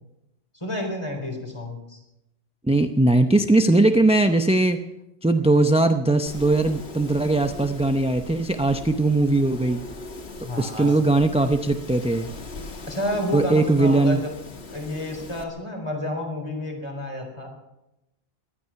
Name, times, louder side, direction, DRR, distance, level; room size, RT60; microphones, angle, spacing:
voice 1, 0.5-2.0 10.4-10.9 12.8-14.3 14.7-17.5, left 1 dB, 30° left, 2 dB, 4.0 m, -30 dB
voice 2, 2.6-4.8 5.2-9.8 10.6-12.3 13.3-14.2, right 2 dB, 10° right, 6 dB, 0.5 m, -20 dB
Wind, 6.3-15.4, left 3 dB, 85° left, 1.9 m, -40 dB
19.0 x 12.5 x 5.8 m, 0.91 s
omnidirectional pair, 1.1 m